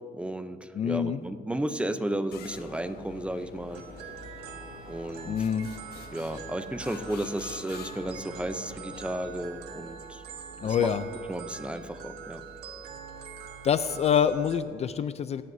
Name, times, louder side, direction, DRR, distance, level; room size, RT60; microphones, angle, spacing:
voice 1, 0.1-3.8 4.9-5.4 6.1-10.2 10.6-10.9 11.3-12.4, right 1 dB, 5° right, 9 dB, 0.6 m, -33 dB
voice 2, 0.8-1.2 5.2-5.7 10.6-11.0 13.6-15.4, left 8 dB, 40° left, 13 dB, 0.4 m, -26 dB
sound 1, 2.3-9.7, left 6 dB, 70° left, 1.2 m, -46 dB
sound 2, 3.7-14.6, right 6 dB, 75° right, 1.4 m, -44 dB
26.0 x 11.0 x 2.7 m, 2.2 s
cardioid pair, 110°, 17 cm